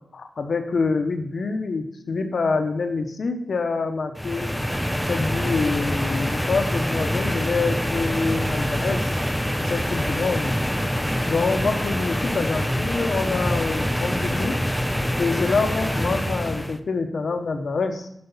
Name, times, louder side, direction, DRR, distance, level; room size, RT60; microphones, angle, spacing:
voice 1, 0.1-4.5 5.1-9.1 9.6-10.6 11.3-14.6 15.2-18.1, left 4 dB, 60° left, 6 dB, 1.0 m, -26 dB
sound 1, 4.2-16.8, equal, 5° left, 0.5 m, -25 dB
7.8 x 5.1 x 7.2 m, 0.73 s
wide cardioid pair, 150°, 0 cm